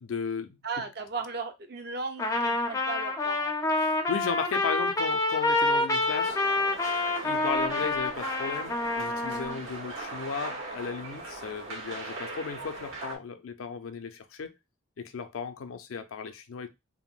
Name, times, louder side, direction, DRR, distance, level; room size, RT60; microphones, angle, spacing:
voice 1, 0.0-0.6 3.8-6.4 7.2-14.6 15.0-16.7, left 5 dB, 80° left, 0.4 m, -35 dB
voice 2, 0.6-3.5 12.1-12.2, right 4 dB, 50° right, 0.5 m, -36 dB
Trumpet, 2.2-9.6, left 2 dB, 15° left, 0.4 m, -27 dB
sound 1, 6.0-13.2, right 2 dB, 75° right, 1.0 m, -39 dB
3.5 x 2.0 x 2.4 m
head